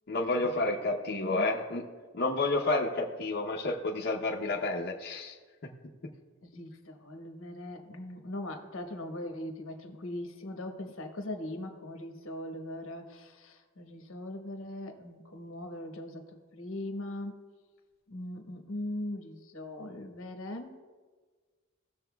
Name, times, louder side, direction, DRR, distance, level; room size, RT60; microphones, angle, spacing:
voice 1, 0.1-1.8 2.2-5.3, left 2 dB, 55° left, -3 dB, 0.7 m, -30 dB
voice 2, 1.1-1.5 6.4-17.3 18.1-20.7, left 1 dB, 75° left, 4 dB, 1.2 m, -40 dB
17.5 x 6.8 x 2.3 m, 1.5 s
head